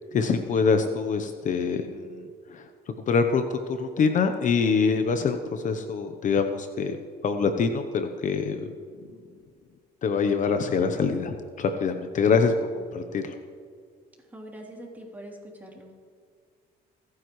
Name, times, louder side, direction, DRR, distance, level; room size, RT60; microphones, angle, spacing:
voice 1, 0.1-2.2 2.5-2.6 3.1-8.6 10.0-13.3, left 5 dB, 50° left, 7 dB, 0.9 m, -25 dB
voice 2, 14.3-15.9, right 1 dB, 10° right, -1 dB, 3.2 m, -43 dB
27.5 x 9.6 x 3.2 m, 2.1 s
cardioid pair, 110°, 17 cm